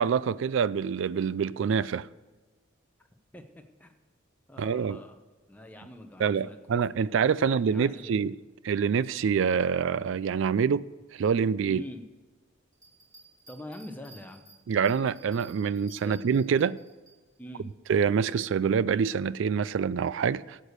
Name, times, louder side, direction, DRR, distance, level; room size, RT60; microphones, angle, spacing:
voice 1, 0.0-2.1 4.6-5.0 6.2-8.4 8.6-10.9 11.1-11.8 14.7-16.8 17.9-20.6, right 6 dB, 65° right, 0.3 m, -26 dB
voice 2, 4.5-5.2 5.5-6.6 7.0-7.1 7.4-8.2 11.7-12.0 13.5-14.4 16.0-16.2 17.4-17.7, left 1 dB, 10° left, 0.9 m, -44 dB
Bell, 12.7-17.1 17.6-17.7, right 3 dB, 15° right, 3.3 m, -54 dB
12.0 x 8.3 x 6.7 m
head